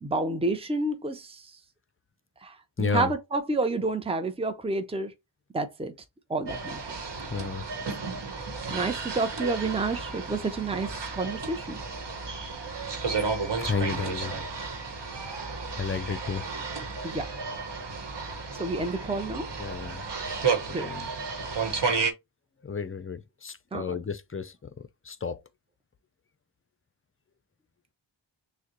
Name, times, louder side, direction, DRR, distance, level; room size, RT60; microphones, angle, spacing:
voice 1, 0.0-1.5 2.4-5.1 5.5-5.9 6.3-7.0 8.7-11.8 17.0-17.3 18.5-19.5 20.7-20.9 23.7-24.0, right 3 dB, 15° right, 0.6 m, -29 dB
voice 2, 2.8-3.1 7.3-7.6 13.6-14.3 15.2-15.4 15.8-16.4 17.1-17.2 19.6-20.0 20.7-21.1 22.6-25.4, left 5 dB, 30° left, 0.5 m, -32 dB
sound 1, 6.5-22.1, right 4 dB, 65° right, 1.1 m, -33 dB
6.2 x 2.2 x 2.9 m
wide cardioid pair, 55°, 45 cm